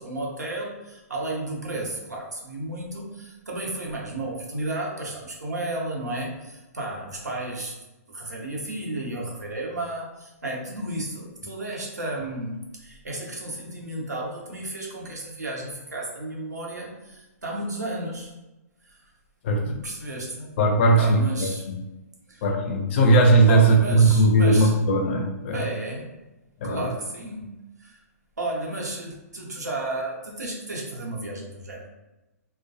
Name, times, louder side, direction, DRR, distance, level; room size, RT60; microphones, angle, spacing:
voice 1, 0.0-7.8 8.1-18.3 18.8-19.0 19.6-20.6 21.0-21.6 22.3-22.4 23.5-24.8 25.5-26.2 26.6-28.0 28.4-31.9, right 1 dB, 90° right, -2 dB, 0.8 m, -33 dB
voice 2, 20.6-21.8 22.4-25.6 26.6-26.9, right 2 dB, 45° left, 3 dB, 0.5 m, -19 dB
2.2 x 2.1 x 2.6 m, 1.0 s
hypercardioid pair, 125°, 9 cm